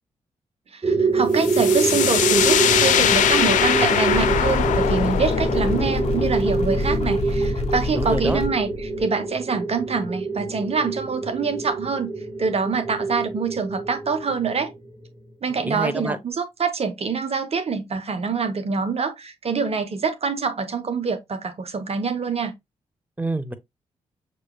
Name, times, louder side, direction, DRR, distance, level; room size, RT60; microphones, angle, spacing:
voice 1, 0.7-12.1 12.4-14.7 15.4-22.5, right 5 dB, 50° right, 1.0 m, -25 dB
sound 1, 0.8-15.1, right 4 dB, 30° right, 1.5 m, -26 dB
sound 2, 1.4-9.0, left 10 dB, 80° left, 0.5 m, -23 dB
sound 3, 4.1-8.5, left 2 dB, 55° left, 1.5 m, -27 dB
voice 2, 8.0-8.4 15.6-16.2 23.2-23.5, right 2 dB, 10° right, 0.9 m, -26 dB
6.3 x 3.0 x 2.3 m
supercardioid pair, 50°, 13 cm